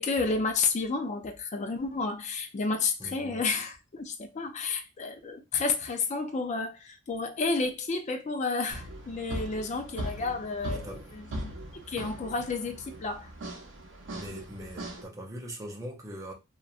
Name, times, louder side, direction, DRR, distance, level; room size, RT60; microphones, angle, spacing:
voice 1, 0.0-11.6 11.8-13.3, left 4 dB, 35° left, 0.4 m, -31 dB
voice 2, 3.0-3.4 10.7-11.0 14.1-16.3, equal, 15° right, 0.5 m, -41 dB
sound 1, 8.7-15.1, right 1 dB, 60° right, 0.6 m, -40 dB
2.9 x 2.3 x 2.4 m
head